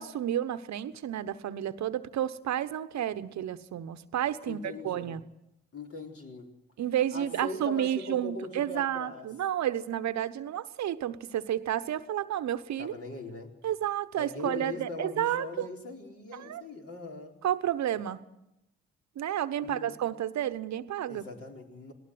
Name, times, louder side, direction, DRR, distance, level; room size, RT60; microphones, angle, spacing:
voice 1, 0.0-5.2 6.8-12.9 13.6-15.7 16.3-16.6 17.4-18.2 19.2-21.2, right 11 dB, 65° right, 12 dB, 1.1 m, -31 dB
voice 2, 4.4-5.1 5.7-6.5 7.1-9.3 12.8-13.5 14.2-17.4 19.6-20.0 21.1-21.9, left 3 dB, 50° left, 1 dB, 4.2 m, -41 dB
19.5 x 18.0 x 7.8 m, 0.87 s
hypercardioid pair, 45°, 30 cm